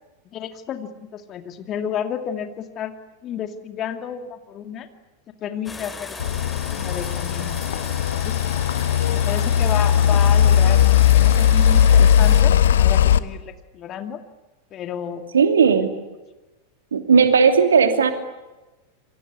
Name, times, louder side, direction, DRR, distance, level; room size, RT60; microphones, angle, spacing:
voice 1, 0.3-2.9 3.2-4.9 5.4-6.2 6.7-8.4 9.1-10.9 11.2-14.2 14.7-15.3, left 8 dB, 30° left, 7 dB, 2.4 m, -31 dB
sound 1, 5.7-12.4, left 3 dB, 15° left, 3.3 m, -36 dB
sound 2, 6.2-13.2, left 9 dB, 60° left, 1.0 m, -17 dB
voice 2, 15.3-15.9 16.9-18.1, right 6 dB, 70° right, 7 dB, 2.8 m, -16 dB
27.0 x 24.5 x 8.5 m, 1.1 s
figure-of-eight pair, 90°, 0 cm